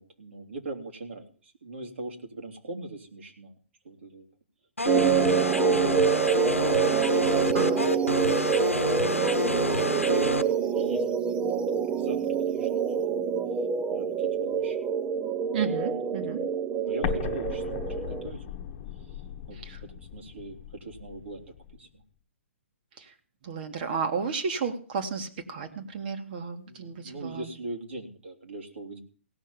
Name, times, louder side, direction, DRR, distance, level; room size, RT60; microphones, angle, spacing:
voice 1, 0.0-3.5 3.8-4.3 4.8-9.4 10.0-11.0 11.3-12.2 12.4-12.8 13.1-13.2 13.9-14.8 16.8-18.4 19.0-19.2 19.5-22.0 26.7-29.0, right 2 dB, 65° right, 1 dB, 3.2 m, -41 dB
sound 1, 4.8-10.4, left 2 dB, 90° left, 0.9 m, -28 dB
sound 2, 4.9-18.3, right 7 dB, 15° right, 0.6 m, -26 dB
voice 2, 7.5-7.8 15.5-16.4 19.5-19.8 23.0-23.1 23.4-27.5, right 5 dB, 45° right, 5 dB, 2.2 m, -33 dB
Explosion, 17.0-21.8, left 10 dB, 35° left, 1.3 m, -37 dB
17.0 x 6.5 x 8.8 m, 0.41 s
figure-of-eight pair, 120°, 7 cm